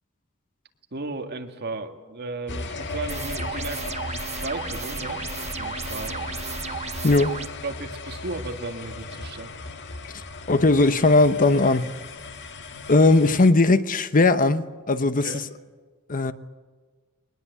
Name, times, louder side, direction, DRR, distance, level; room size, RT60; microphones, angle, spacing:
voice 1, 0.9-5.2 5.6-6.3 7.1-7.3 7.6-9.5 14.9-15.5, right 2 dB, 50° right, 2.1 m, -35 dB
sound 1, 2.5-13.5, left 3 dB, 55° left, 1.7 m, -36 dB
sound 2, 3.1-7.5, right 6 dB, 30° right, 0.8 m, -34 dB
voice 2, 10.5-11.9 12.9-15.3 16.1-16.3, left 2 dB, 40° left, 0.9 m, -18 dB
21.5 x 20.0 x 8.2 m
head